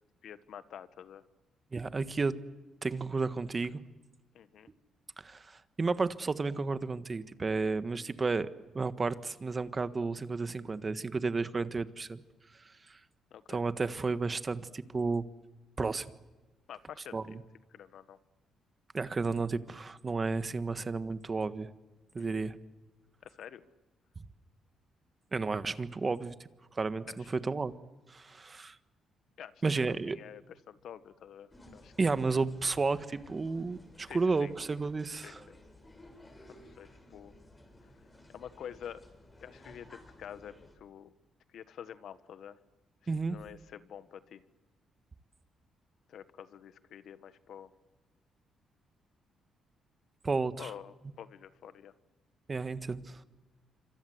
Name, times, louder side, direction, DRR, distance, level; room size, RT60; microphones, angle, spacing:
voice 1, 0.2-1.2 4.3-4.7 13.3-13.6 16.7-17.4 17.7-18.2 22.2-22.4 23.2-23.6 27.1-27.3 29.4-29.6 30.0-32.3 34.1-34.5 35.2-35.6 36.5-37.3 38.3-39.0 39.4-41.1 41.5-42.6 43.0-44.4 46.1-47.7 50.6-51.9, left 9 dB, 70° left, 12 dB, 1.5 m, -48 dB
voice 2, 1.7-2.3 2.8-3.8 5.2-8.5 8.7-12.2 12.9-13.0 13.5-15.2 15.8-16.1 17.1-17.2 18.9-21.7 22.1-22.6 25.3-26.3 26.7-27.7 28.1-28.7 29.6-30.2 32.0-35.4 43.1-43.4 50.2-50.7 52.5-53.2, right 4 dB, 30° right, 12 dB, 1.5 m, -32 dB
sound 1, 31.5-40.7, left 1 dB, 20° left, 7.2 m, -56 dB
27.0 x 25.5 x 8.1 m, 1.2 s
cardioid pair, 90°, 0 cm